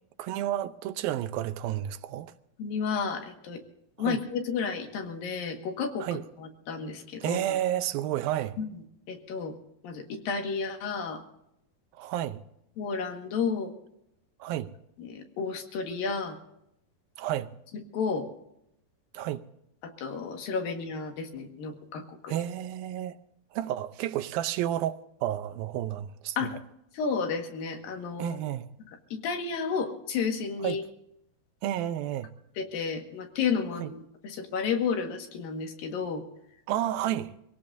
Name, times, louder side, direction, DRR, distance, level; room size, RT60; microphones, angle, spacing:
voice 1, 0.2-2.3 4.0-4.2 6.0-6.2 7.2-8.6 11.9-12.4 14.4-14.7 17.2-17.5 19.1-19.4 22.3-23.2 23.5-26.5 28.2-28.7 30.6-30.8 31.6-32.3 33.8-33.9 36.7-37.3, right 12 dB, 85° right, 2.6 m, -31 dB
voice 2, 2.6-3.6 4.0-7.4 8.6-8.7 9.1-9.5 9.8-11.2 12.8-13.7 15.0-16.4 17.9-18.3 20.0-22.3 26.4-26.5 26.9-28.4 29.1-30.8 32.6-36.2, left 5 dB, 75° left, 3.5 m, -32 dB
24.5 x 17.5 x 2.7 m
omnidirectional pair, 4.1 m